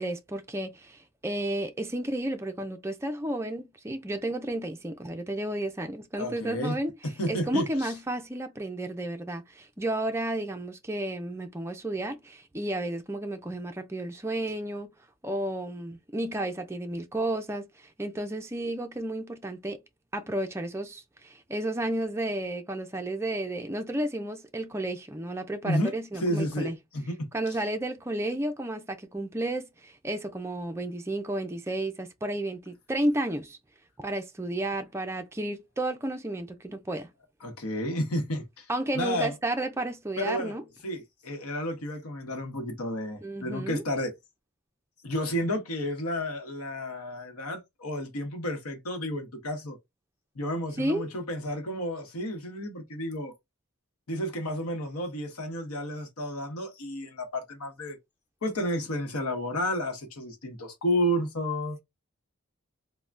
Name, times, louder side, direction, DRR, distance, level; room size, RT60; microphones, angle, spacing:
voice 1, 0.0-6.9 7.3-14.9 15.2-19.8 20.1-26.8 27.3-33.6 34.0-37.1 38.7-40.6 43.2-43.8 50.8-51.1, right 1 dB, 10° right, 0.4 m, -32 dB
voice 2, 6.2-6.7 7.2-7.9 25.6-27.3 37.4-38.7 38.9-39.3 40.2-40.6 40.8-44.1 45.0-49.8 50.3-53.3 54.1-58.0 58.4-61.8, equal, 90° left, 0.9 m, -31 dB
3.3 x 2.1 x 2.5 m
head